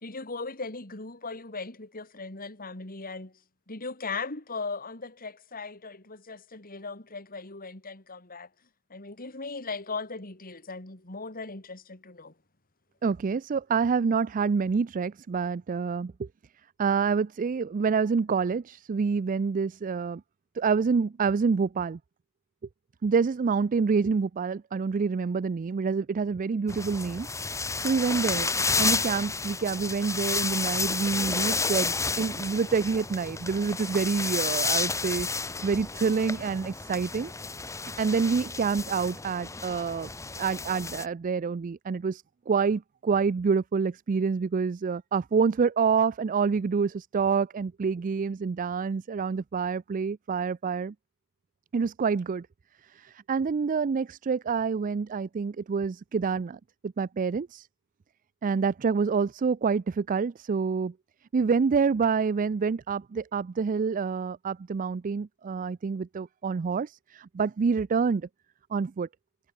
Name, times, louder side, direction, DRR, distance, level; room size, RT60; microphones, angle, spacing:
voice 1, 0.0-3.3 3.7-8.5 8.9-12.3, left 4 dB, 40° left, 3.3 m, -38 dB
voice 2, 13.0-16.3 16.8-20.2 20.6-22.0 23.0-27.3 27.8-28.5 28.8-37.3 37.8-40.1 40.4-50.9 51.7-52.5 52.9-57.7 58.4-60.9 61.3-68.3 68.7-69.1, right 5 dB, 35° right, 0.4 m, -27 dB
sound 1, 26.7-41.0, left 4 dB, 15° left, 1.0 m, -31 dB
head